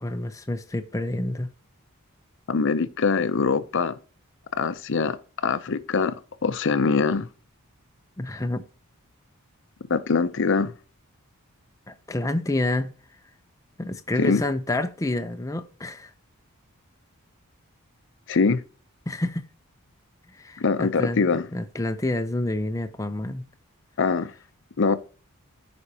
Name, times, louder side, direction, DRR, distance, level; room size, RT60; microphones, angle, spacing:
voice 1, 0.0-1.5 8.2-8.6 11.9-12.9 13.8-16.1 19.1-19.4 20.3-23.5, left 2 dB, 15° left, 0.5 m, -28 dB
voice 2, 2.5-3.9 4.6-6.1 6.4-7.3 9.9-10.7 14.2-14.4 18.3-18.6 20.6-21.5 24.0-24.3 24.8-25.0, left 4 dB, 55° left, 0.6 m, -23 dB
14.0 x 5.2 x 2.8 m
head